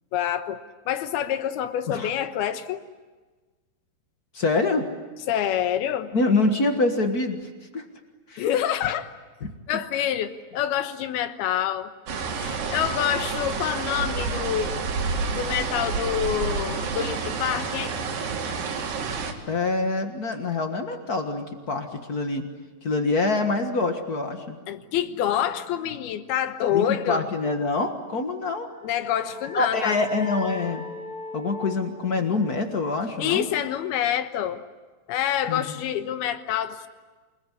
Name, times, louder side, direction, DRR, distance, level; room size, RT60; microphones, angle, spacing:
voice 1, 0.1-0.6 0.9-2.8 5.3-6.1 8.4-9.1 9.7-11.9 12.4-14.8 15.3-18.0 24.7-27.3 28.8-30.0 33.2-34.6 35.1-36.9, left 10 dB, 85° left, 10 dB, 3.1 m, -27 dB
voice 2, 4.3-4.9 6.1-7.9 8.3-8.4 9.4-9.5 19.5-22.5 22.8-24.6 26.7-28.7 29.5-30.9 31.3-33.5 35.5-35.8, left 3 dB, 70° left, 5 dB, 0.9 m, -25 dB
sound 1, 12.1-19.3, right 4 dB, 65° right, 3.9 m, -29 dB
sound 2, 28.7-34.1, left 1 dB, 15° left, 3.7 m, -40 dB
28.5 x 20.5 x 9.9 m, 1.3 s
omnidirectional pair, 4.4 m